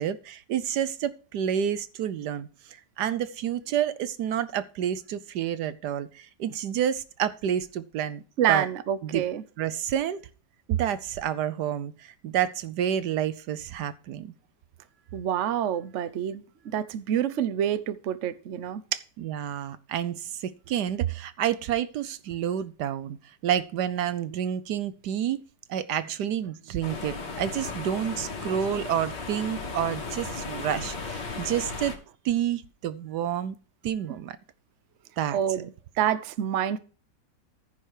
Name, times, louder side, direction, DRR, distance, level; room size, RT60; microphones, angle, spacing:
voice 1, 0.0-8.2 8.5-8.7 9.0-9.2 9.6-10.2 10.7-14.3 19.2-25.4 25.7-32.0 32.2-33.6 33.8-34.4 35.2-35.7, right 9 dB, 70° right, 1.2 m, -29 dB
voice 2, 8.4-9.4 15.1-16.4 16.7-19.0 35.3-35.7 36.0-36.8, right 10 dB, 55° right, 0.9 m, -27 dB
sound 1, 26.8-32.0, left 4 dB, 75° left, 2.7 m, -35 dB
14.5 x 5.6 x 4.8 m
omnidirectional pair, 1.9 m